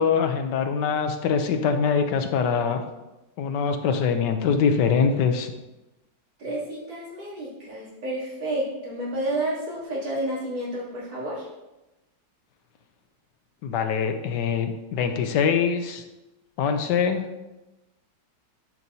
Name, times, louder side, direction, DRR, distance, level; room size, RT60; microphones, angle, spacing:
voice 1, 0.0-2.8 3.4-5.5 13.6-16.0 16.6-17.3, left 6 dB, 75° left, 7 dB, 1.3 m, -23 dB
voice 2, 6.4-11.5, right 1 dB, 85° right, -8 dB, 3.5 m, -30 dB
10.5 x 5.9 x 2.7 m, 0.99 s
omnidirectional pair, 2.0 m